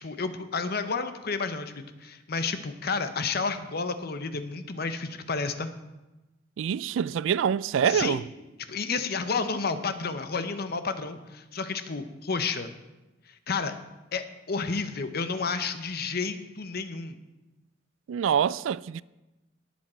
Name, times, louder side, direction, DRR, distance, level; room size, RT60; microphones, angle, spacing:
voice 1, 0.0-5.7 7.8-8.2 8.7-12.7 13.5-13.7 14.1-17.2, left 4 dB, 55° left, 0.8 m, -31 dB
voice 2, 6.6-8.2 18.1-19.0, right 8 dB, 85° right, 0.3 m, -25 dB
18.5 x 7.2 x 4.4 m
head